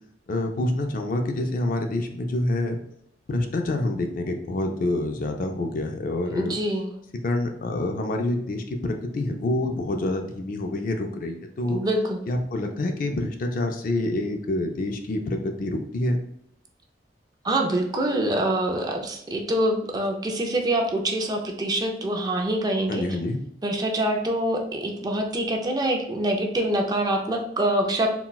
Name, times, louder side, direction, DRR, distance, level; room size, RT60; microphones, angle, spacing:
voice 1, 0.3-2.8 3.3-6.6 7.2-11.8 12.3-16.2 22.9-23.4, left 2 dB, 50° left, 5 dB, 0.4 m, -27 dB
voice 2, 6.3-6.9 11.7-12.2 17.4-23.0 23.6-28.1, right 1 dB, 20° right, 2 dB, 0.4 m, -25 dB
3.9 x 2.2 x 2.3 m, 0.70 s
head